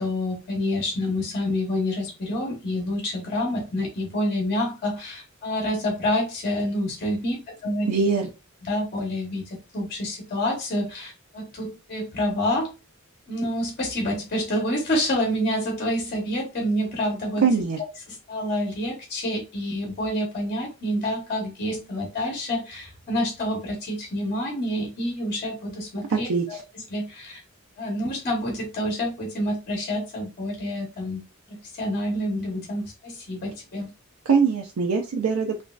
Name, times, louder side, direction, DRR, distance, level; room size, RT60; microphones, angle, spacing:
voice 1, 0.0-7.9 8.6-12.7 13.3-17.4 18.1-26.6 26.9-27.4 27.8-33.9, left 1 dB, 45° left, 0.8 m, -28 dB
voice 2, 7.9-8.3 17.4-17.8 26.1-26.6 34.3-35.6, right 5 dB, 80° right, 0.5 m, -22 dB
3.0 x 2.6 x 2.2 m
head